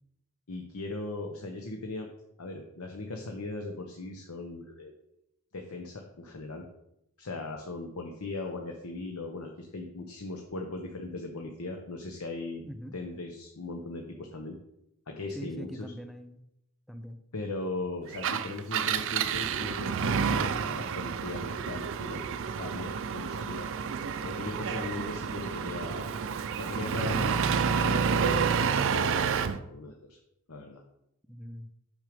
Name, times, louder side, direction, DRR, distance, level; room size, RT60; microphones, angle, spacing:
voice 1, 0.5-2.1 2.4-4.9 5.5-6.7 7.2-12.6 12.9-14.6 15.1-15.9 17.3-23.7 24.2-26.1 26.6-28.5 28.8-30.2 30.5-30.8, left 2 dB, 75° left, 3 dB, 0.9 m, -38 dB
voice 2, 15.3-16.4 16.9-17.2 31.3-31.7, equal, ahead, 8 dB, 0.5 m, -42 dB
Engine, 18.1-29.6, right 6 dB, 60° right, 0.5 m, -29 dB
6.6 x 6.3 x 5.1 m, 0.83 s
head